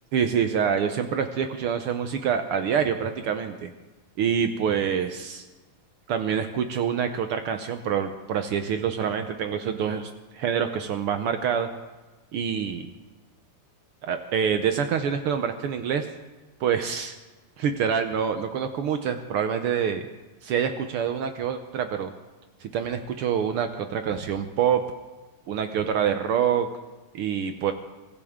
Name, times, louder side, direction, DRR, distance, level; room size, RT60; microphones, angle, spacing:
voice 1, 0.1-3.7 4.2-5.4 6.1-11.7 12.3-12.9 14.0-16.1 16.6-17.1 17.6-20.1 20.4-22.1 22.6-24.8 25.5-26.7 27.1-27.7, right 7 dB, 85° right, 7 dB, 1.2 m, -26 dB
24.0 x 16.0 x 3.7 m, 1.2 s
omnidirectional pair, 3.6 m